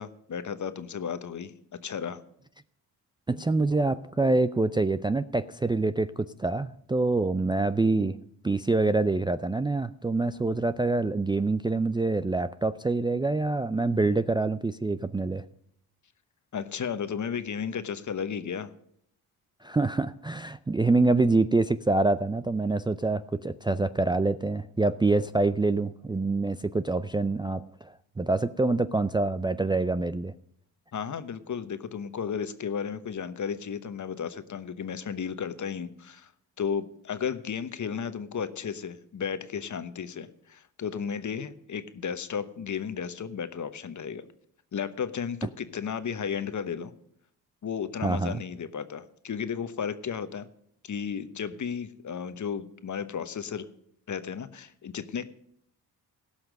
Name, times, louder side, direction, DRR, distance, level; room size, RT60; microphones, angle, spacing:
voice 1, 0.0-2.2 16.5-18.7 30.9-36.3 36.6-44.2 44.7-46.9 47.6-50.5 50.8-53.7 54.1-55.3, left 7 dB, 50° left, 12 dB, 1.1 m, -34 dB
voice 2, 3.3-8.2 8.4-15.4 19.6-30.3 48.0-48.4, right 3 dB, 10° right, 11 dB, 0.4 m, -26 dB
16.5 x 5.8 x 6.5 m, 0.71 s
supercardioid pair, 60°, 39 cm